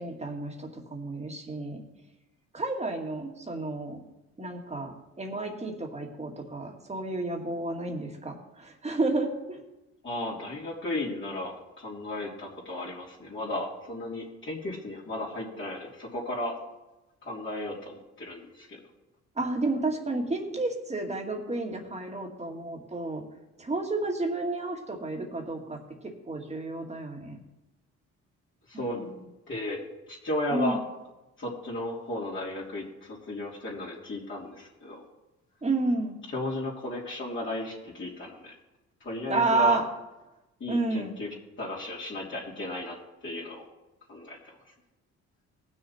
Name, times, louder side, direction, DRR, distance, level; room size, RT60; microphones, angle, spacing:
voice 1, 0.0-1.8 2.5-4.0 4.4-9.6 19.4-23.2 23.6-25.8 26.0-27.4 28.7-29.1 30.5-30.8 35.6-36.2 39.3-39.8 40.7-41.2, right 2 dB, 20° right, 2 dB, 2.2 m, -31 dB
voice 2, 10.0-16.5 17.2-18.8 28.7-29.1 29.5-29.8 30.1-30.8 31.4-35.0 36.3-38.5 39.0-39.8 40.6-41.3 41.6-42.9 43.2-43.6 44.1-44.4, left 1 dB, 40° left, -6 dB, 3.2 m, -34 dB
18.5 x 6.5 x 4.4 m, 1.0 s
cardioid pair, 90°, 30 cm